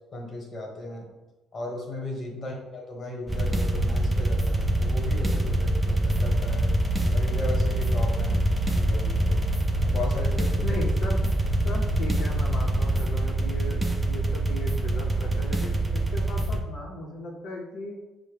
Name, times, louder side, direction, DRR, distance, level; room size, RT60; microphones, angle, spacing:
voice 1, 0.1-1.1 1.5-6.7 7.1-8.4 8.8-9.4 9.8-10.8, left 2 dB, 35° left, 0 dB, 1.1 m, -36 dB
voice 2, 2.3-2.6 8.1-8.5 10.6-11.3 11.6-18.0, left 1 dB, 70° left, -3 dB, 0.6 m, -37 dB
sound 1, 3.3-16.6, right 1 dB, 10° right, 0.4 m, -25 dB
5.5 x 2.0 x 3.3 m, 1.1 s
cardioid pair, 125°, 0 cm